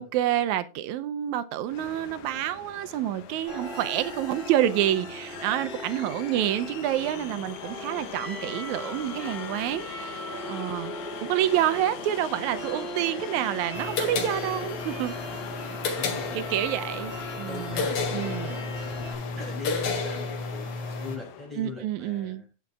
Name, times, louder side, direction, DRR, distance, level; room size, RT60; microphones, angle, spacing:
voice 1, 0.0-9.9 10.5-10.9 11.2-15.1 16.3-17.1 17.4-17.8 18.1-18.6 21.6-22.4, right 12 dB, 85° right, 2.0 m, -28 dB
sound 1, 1.7-21.5, left 8 dB, 85° left, 2.4 m, -41 dB
sound 2, 3.5-19.1, equal, 30° left, 4.9 m, -39 dB
sound 3, 13.7-21.2, left 4 dB, 70° left, 3.2 m, -32 dB
voice 2, 16.0-16.4 17.0-18.8 19.3-22.7, left 3 dB, ahead, 6.5 m, -41 dB
18.0 x 7.1 x 2.4 m
omnidirectional pair, 3.3 m